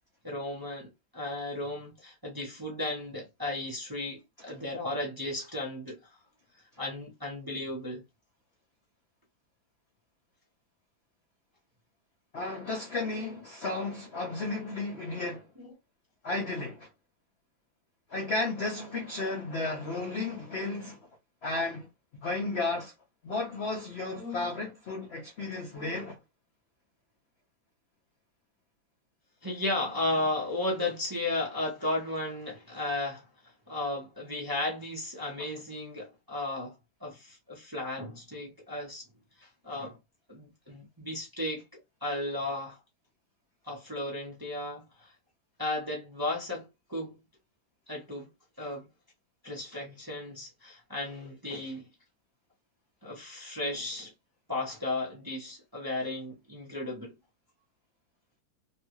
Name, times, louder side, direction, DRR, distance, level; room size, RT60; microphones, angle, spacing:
voice 1, 0.2-6.0 6.8-8.0 15.6-15.7 24.2-24.5 25.7-26.1 29.4-33.3 33.7-36.7 37.0-39.0 39.4-40.0 40.3-42.8 43.6-45.1 45.6-47.2 47.9-48.3 48.6-48.9 49.4-51.9 53.0-54.1 54.5-57.1, left 2 dB, 20° right, 0.7 m, -35 dB
voice 2, 12.3-15.5 16.2-16.9 18.1-21.0 21.4-21.9 22.2-22.9 23.2-26.2, left 3 dB, 60° left, 0.6 m, -33 dB
3.3 x 2.3 x 2.9 m
omnidirectional pair, 2.1 m